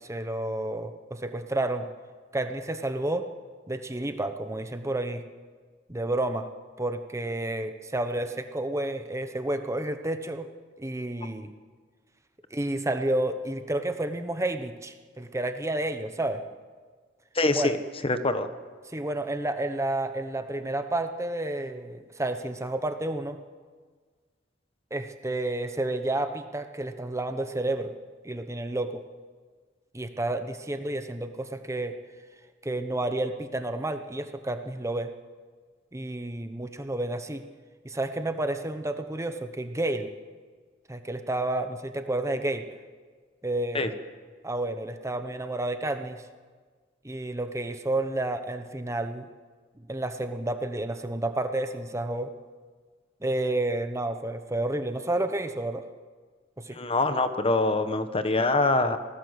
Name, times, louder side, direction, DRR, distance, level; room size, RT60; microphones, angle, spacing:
voice 1, 0.0-1.9 2.3-3.3 3.7-5.2 5.9-6.5 6.8-10.5 10.8-11.5 12.5-16.4 17.5-17.7 18.9-23.4 24.9-27.9 28.2-29.0 29.9-32.0 32.6-35.1 35.9-37.4 37.8-40.1 40.9-42.7 43.4-43.9 44.4-46.2 47.0-49.3 49.9-52.3 53.2-55.8 56.6-56.8, right 1 dB, 15° right, 8 dB, 1.0 m, -30 dB
voice 2, 17.3-17.8 18.0-18.5 43.7-43.9 56.7-59.0, left 2 dB, 30° left, 9 dB, 1.3 m, -24 dB
26.0 x 18.5 x 8.1 m, 1.5 s
head